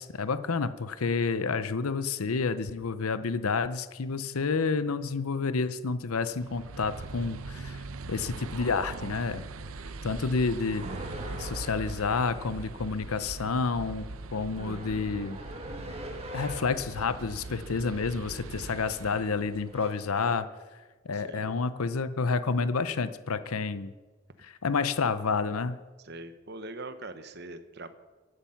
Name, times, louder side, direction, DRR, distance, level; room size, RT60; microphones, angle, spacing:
voice 1, 0.0-9.4 10.0-10.9 11.4-14.1 14.3-15.4 16.3-20.5 21.0-23.9 24.4-25.8, left 4 dB, 85° left, 13 dB, 0.7 m, -29 dB
sound 1, 6.3-19.8, right 3 dB, 75° right, 0.8 m, -41 dB
voice 2, 9.7-10.1 21.1-21.5 26.0-27.9, right 2 dB, 50° right, 10 dB, 1.1 m, -43 dB
sound 2, 10.8-12.1 14.5-16.9 19.0-19.3 19.7-20.4, equal, 30° right, 1.8 m, -42 dB
16.5 x 11.5 x 5.8 m, 1.3 s
head